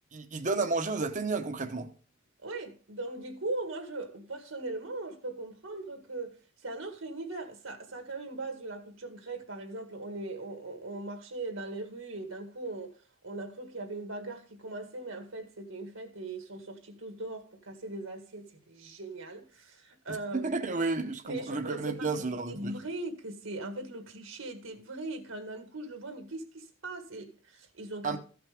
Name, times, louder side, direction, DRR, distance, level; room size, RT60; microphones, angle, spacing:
voice 1, 0.1-1.9 20.3-22.7 28.0-28.2, right 3 dB, 40° right, 0.9 m, -31 dB
voice 2, 2.4-13.0 13.2-20.5 21.2-22.1 22.5-28.2, right 2 dB, 80° right, 1.8 m, -39 dB
15.0 x 5.9 x 3.5 m
head